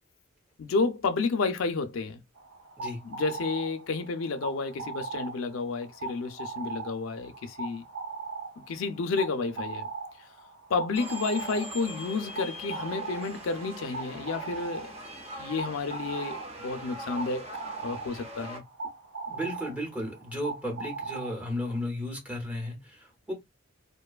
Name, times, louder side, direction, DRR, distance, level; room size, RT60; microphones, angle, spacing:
voice 1, 0.6-2.2 3.0-7.8 8.7-9.9 10.7-14.9 15.4-17.5 17.8-18.6, left 4 dB, 80° left, 0.4 m, -31 dB
sound 1, 2.4-21.8, right 4 dB, 60° right, 0.9 m, -40 dB
voice 2, 2.8-3.1 19.3-23.3, left 1 dB, 5° right, 0.9 m, -34 dB
sound 2, 10.9-18.6, equal, 30° right, 0.6 m, -42 dB
2.6 x 2.2 x 2.3 m
head